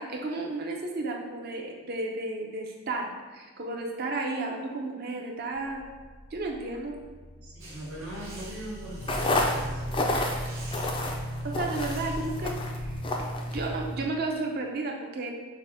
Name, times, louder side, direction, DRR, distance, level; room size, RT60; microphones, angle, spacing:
voice 1, 0.0-5.8 6.3-6.9 11.4-12.6 13.5-15.3, right 2 dB, 45° right, 1 dB, 0.6 m, -33 dB
sound 1, 5.5-13.0, left 1 dB, 80° left, 0.7 m, -43 dB
voice 2, 7.4-10.0, right 1 dB, 85° right, -4 dB, 1.2 m, -41 dB
Electric Toothbrush Flyby, 7.6-12.6, right 2 dB, 65° right, 1.4 m, -48 dB
sound 2, 9.0-14.1, left 1 dB, 25° left, 0.3 m, -30 dB
6.5 x 2.2 x 3.5 m, 1.5 s
head